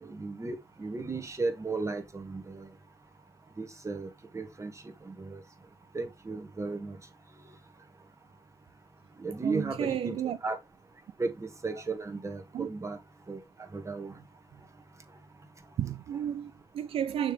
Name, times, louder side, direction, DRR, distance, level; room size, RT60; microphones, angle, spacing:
voice 1, 0.0-2.7 3.6-4.1 4.3-4.7 5.1-5.4 5.9-7.0 9.2-10.2 10.4-10.6 11.2-13.0 13.3-13.4 13.7-14.1, right 3 dB, 30° right, 1.8 m, -35 dB
voice 2, 9.4-10.4 11.7-11.8 12.5-12.7 15.8-17.3, right 9 dB, 75° right, 0.5 m, -32 dB
6.3 x 3.6 x 4.9 m
supercardioid pair, 55°, 10 cm